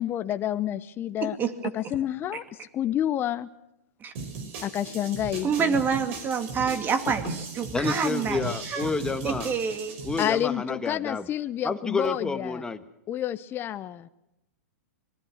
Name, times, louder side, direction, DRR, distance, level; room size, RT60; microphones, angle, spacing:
voice 1, 0.0-1.4 1.7-3.5 4.6-5.8 10.2-12.6 13.1-14.1, left 11 dB, 25° left, 11 dB, 0.9 m, -29 dB
voice 2, 1.2-1.5 4.0-4.1 5.4-8.4 8.7-8.9 9.2-10.0, right 6 dB, 25° right, 9 dB, 2.4 m, -27 dB
sound 1, 4.1-10.3, right 4 dB, 50° right, 5.7 m, -37 dB
voice 3, 7.7-9.5 10.0-11.3 11.6-12.8, left 4 dB, 10° left, 9 dB, 1.4 m, -29 dB
25.5 x 20.0 x 6.5 m, 0.86 s
hypercardioid pair, 120°, 8 cm